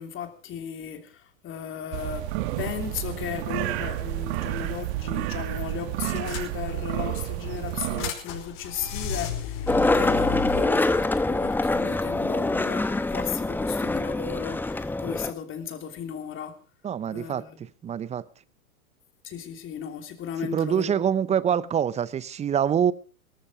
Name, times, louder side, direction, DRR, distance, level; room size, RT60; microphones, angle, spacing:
voice 1, 0.0-2.3 2.6-16.6 17.1-17.6 19.2-21.0, left 8 dB, 30° left, 3.2 m, -35 dB
sound 1, 1.9-8.1, right 16 dB, 50° right, 1.4 m, -30 dB
sound 2, 5.2-5.4 5.7-5.8 6.2-6.9 7.4-10.6, left 6 dB, 45° left, 5.3 m, -33 dB
Skateboard, 9.7-15.3, left 2 dB, 5° left, 1.0 m, -25 dB
voice 2, 16.8-18.2 20.5-22.9, right 8 dB, 15° right, 0.7 m, -25 dB
18.5 x 14.0 x 4.8 m
hypercardioid pair, 110°, 40 cm